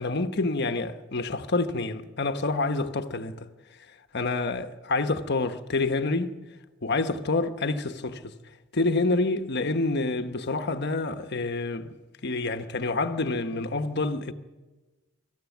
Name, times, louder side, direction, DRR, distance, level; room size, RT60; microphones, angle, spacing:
voice 1, 0.0-3.5 4.1-6.4 6.8-8.3 8.7-12.0 12.2-14.3, left 3 dB, 55° left, 1.2 m, -27 dB
24.0 x 14.0 x 9.3 m
head